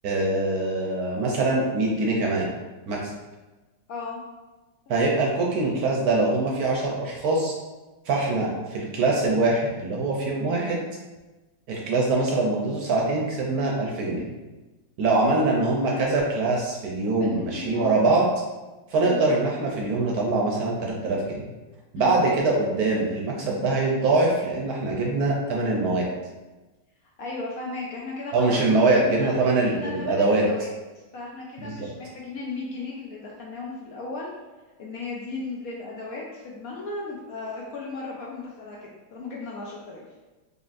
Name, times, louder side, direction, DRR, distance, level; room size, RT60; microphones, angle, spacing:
voice 1, 0.0-2.5 2.9-3.1 4.9-7.5 8.1-10.8 11.7-14.3 15.0-18.2 18.9-21.5 21.9-26.1 28.3-30.5 31.6-31.9, right 2 dB, 65° right, -1 dB, 1.0 m, -23 dB
voice 2, 3.9-4.2 17.2-18.1 19.0-19.2 21.9-22.4 27.2-29.3 29.7-30.7 31.1-34.3 34.8-40.0, left 3 dB, 70° left, -3 dB, 0.9 m, -35 dB
4.0 x 3.5 x 2.4 m, 1.2 s
omnidirectional pair, 1.9 m